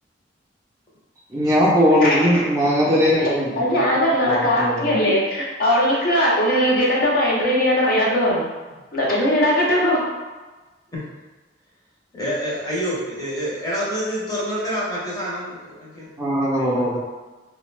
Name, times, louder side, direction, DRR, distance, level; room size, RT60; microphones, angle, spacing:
voice 1, 1.3-3.5 4.3-4.9 16.2-17.0, equal, 15° right, -6 dB, 0.5 m, -19 dB
voice 2, 2.0-2.3 3.5-8.5 8.9-10.1, equal, 55° left, -5 dB, 0.6 m, -19 dB
voice 3, 12.1-16.1 16.6-16.9, equal, 20° left, -6 dB, 0.7 m, -27 dB
2.4 x 2.1 x 3.1 m, 1.2 s
head